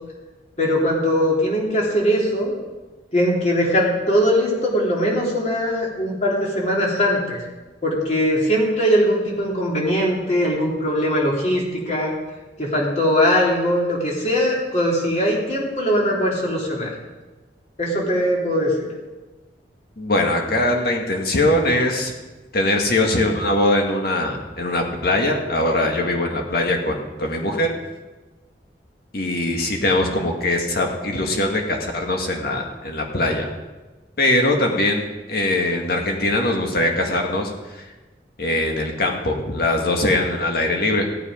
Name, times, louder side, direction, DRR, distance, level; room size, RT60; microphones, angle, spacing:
voice 1, 0.6-2.5 3.1-7.4 7.8-12.2 12.6-16.9 17.8-18.9, equal, 40° left, -3 dB, 3.3 m, -20 dB
voice 2, 20.0-22.1 22.5-27.7 29.1-33.5 34.2-37.9 38.4-41.1, left 1 dB, 60° left, 2 dB, 1.9 m, -21 dB
15.5 x 8.9 x 5.1 m, 1.2 s
head